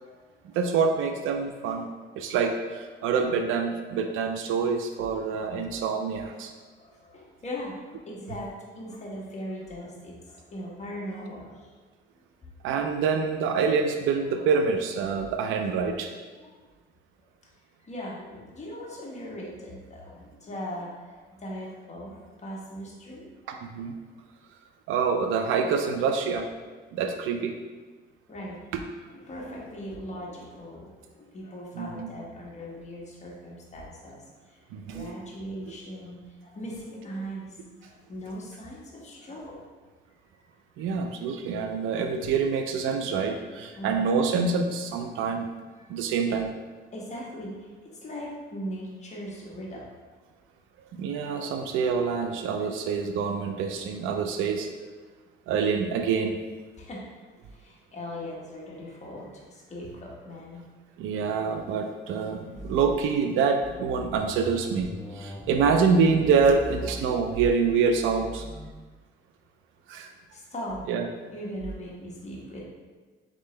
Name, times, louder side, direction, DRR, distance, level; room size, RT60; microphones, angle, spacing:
voice 1, 0.0-0.4 5.7-5.8 6.5-11.7 12.4-12.5 16.3-16.5 17.8-23.3 28.3-28.6 29.1-34.2 34.5-34.6 34.9-39.6 43.8-44.1 45.8-45.9 46.9-49.9 56.7-57.0 57.5-60.6 70.3-70.8 71.3-72.6, equal, 35° left, -4 dB, 1.3 m, -39 dB
voice 2, 0.5-1.9 2.2-6.5 12.6-16.1 23.5-24.0 24.9-26.5 26.9-27.6 28.7-28.8 31.7-32.1 34.7-35.1 40.8-45.5 45.9-46.5 50.9-54.7 55.5-56.4 61.0-68.5 69.9-70.1 70.9-71.1, right 5 dB, 90° right, 5 dB, 0.4 m, -26 dB
sound 1, 62.5-63.2 63.6-68.7, left 1 dB, 10° left, 0.4 m, -40 dB
3.8 x 3.6 x 3.2 m, 1.3 s
cardioid pair, 90°, 20 cm